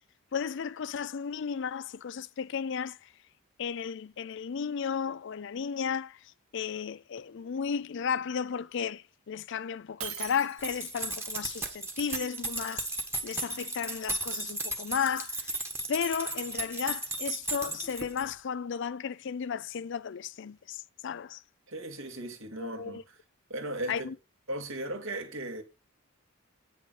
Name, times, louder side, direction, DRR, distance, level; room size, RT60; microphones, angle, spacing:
voice 1, 0.3-3.0 3.6-6.2 6.5-12.9 13.2-15.6 15.9-21.4 22.6-23.0 23.9-24.1, left 7 dB, 55° left, 0.4 m, -34 dB
Shatter, 10.0-11.0, right 9 dB, 80° right, 2.0 m, -40 dB
sound 1, 10.6-18.3, right 2 dB, 10° right, 1.3 m, -35 dB
voice 2, 21.7-23.0 23.5-24.1 24.5-25.6, right 1 dB, 65° right, 2.1 m, -37 dB
9.1 x 6.5 x 5.3 m
head